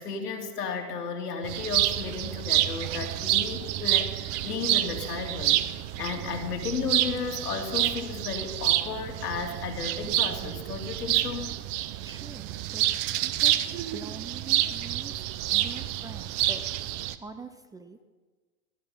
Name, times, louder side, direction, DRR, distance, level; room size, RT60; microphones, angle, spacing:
voice 1, 0.0-5.6 6.0-11.5, left 5 dB, 85° left, 2 dB, 2.7 m, -34 dB
sound 1, 1.4-17.2, right 14 dB, 40° right, 0.8 m, -28 dB
voice 2, 12.0-12.9 13.2-15.1 15.5-16.6 17.2-18.0, right 3 dB, 10° right, 9 dB, 0.6 m, -44 dB
17.5 x 12.5 x 5.5 m, 1.3 s
hypercardioid pair, 105°, 45 cm